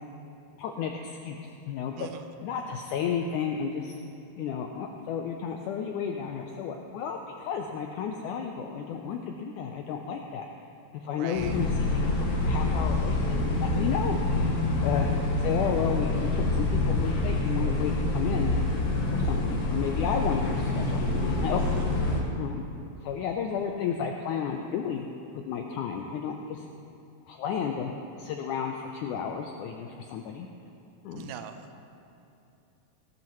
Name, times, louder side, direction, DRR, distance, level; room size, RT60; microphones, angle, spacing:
voice 1, 0.6-2.1 2.4-4.0 4.4-10.5 10.9-14.2 14.6-15.1 15.4-18.7 19.1-21.6 21.9-22.7 23.0-25.1 25.3-26.7 27.3-27.9 28.2-30.5 31.0-31.3, left 7 dB, 90° left, 3 dB, 1.8 m, -32 dB
voice 2, 11.0-11.6 21.6-21.9 31.1-31.7, right 10 dB, 80° right, 7 dB, 2.2 m, -42 dB
sound 1, 11.3-22.2, left 2 dB, 70° left, 3.0 m, -26 dB
18.0 x 13.0 x 3.1 m, 2.8 s
omnidirectional pair, 4.2 m